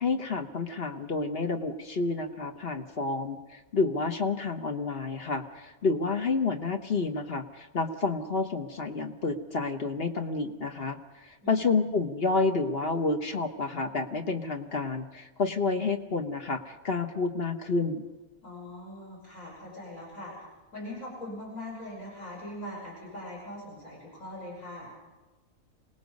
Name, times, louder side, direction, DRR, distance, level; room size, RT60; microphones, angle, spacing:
voice 1, 0.0-11.0 11.3-18.0, left 3 dB, 45° left, 6 dB, 1.3 m, -29 dB
voice 2, 18.4-20.3 20.7-24.9, left 1 dB, 65° left, -4 dB, 6.5 m, -41 dB
26.5 x 18.5 x 5.3 m, 1.2 s
omnidirectional pair, 1.5 m